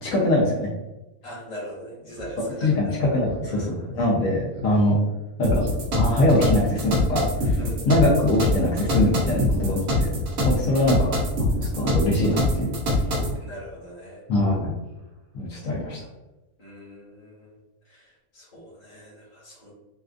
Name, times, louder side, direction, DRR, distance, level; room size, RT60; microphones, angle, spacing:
voice 1, 0.0-0.7 2.6-5.0 5.4-5.6 5.9-7.6 7.9-10.1 10.4-12.7 14.3-14.7 15.3-16.1, left 1 dB, 70° left, -4 dB, 1.1 m, -23 dB
voice 2, 1.2-3.0 3.4-4.0 7.6-7.8 9.2-9.6 13.3-14.2 16.6-17.6 17.8-19.7, equal, 30° left, -6 dB, 1.2 m, -40 dB
Speech synthesizer, 2.1-2.3 2.7-2.8 3.1-3.5 3.9-4.0 4.5-4.7 5.1-5.2 5.6-6.0 6.9-7.2 8.2-8.6 8.8-8.9 9.5-9.9 10.1-10.4 10.8-11.1 11.5-11.6 12.0-12.2 13.1-13.4 13.7-13.9 14.3-14.6 15.0-15.1, equal, 55° right, 1.1 m, -39 dB
sound 1, 5.4-13.3, left 1 dB, 90° right, 1.4 m, -24 dB
4.1 x 2.4 x 2.4 m, 1.0 s
omnidirectional pair, 1.5 m